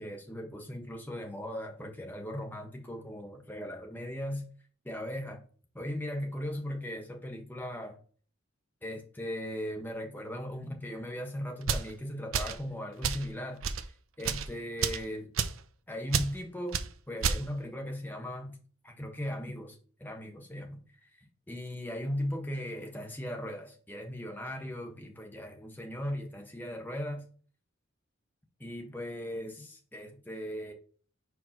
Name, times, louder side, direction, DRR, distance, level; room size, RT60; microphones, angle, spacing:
voice 1, 0.0-4.5 4.8-5.4 5.7-8.0 8.8-13.6 14.2-15.3 15.9-20.8 21.2-27.3 28.6-30.7, equal, 10° left, 2 dB, 1.3 m, -38 dB
sound 1, 11.6-11.9 12.3-12.6 13.0-13.3 13.6-13.8 14.2-14.5 14.8-15.0 15.4-15.6 16.1-16.3 16.7-16.9 17.2-17.4, right 6 dB, 70° right, 0.6 m, -30 dB
4.8 x 4.7 x 5.7 m, 0.42 s
head